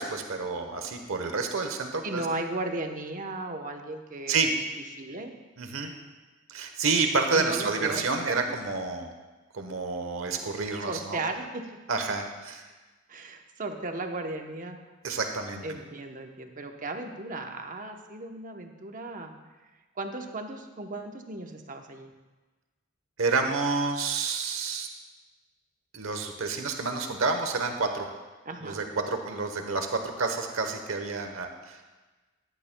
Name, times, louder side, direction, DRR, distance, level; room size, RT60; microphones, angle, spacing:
voice 1, 0.0-2.2 4.3-4.5 5.6-5.9 6.5-9.1 9.5-11.2 11.9-12.6 15.0-15.6 23.2-24.9 25.9-28.1 28.6-31.9, right 4 dB, 75° right, 5 dB, 1.0 m, -29 dB
voice 2, 2.0-4.4 5.0-5.3 7.3-8.6 10.9-11.6 13.1-14.8 15.6-19.3 20.0-22.1 28.5-28.8, right 2 dB, 40° right, 4 dB, 0.9 m, -36 dB
14.5 x 11.5 x 2.2 m, 1.2 s
head